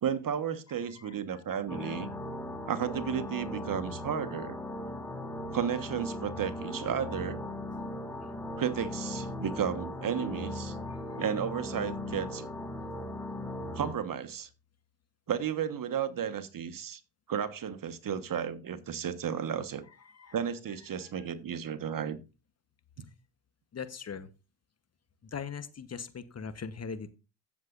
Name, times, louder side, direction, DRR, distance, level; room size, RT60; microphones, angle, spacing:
voice 1, 0.0-2.1 2.7-4.6 5.5-7.4 8.6-10.8 11.2-12.5 13.7-14.5 15.3-17.0 17.3-19.8 20.3-22.2 23.0-23.1, right 8 dB, 45° right, 1.3 m, -33 dB
voice 2, 0.9-1.4 1.8-2.2 8.3-8.4 20.1-20.3 20.9-21.3 23.7-24.3 25.3-27.1, left 6 dB, 30° left, 1.1 m, -41 dB
sound 1, 1.7-13.9, left 1 dB, 5° left, 2.8 m, -38 dB
15.5 x 7.2 x 2.5 m
hypercardioid pair, 55°, 47 cm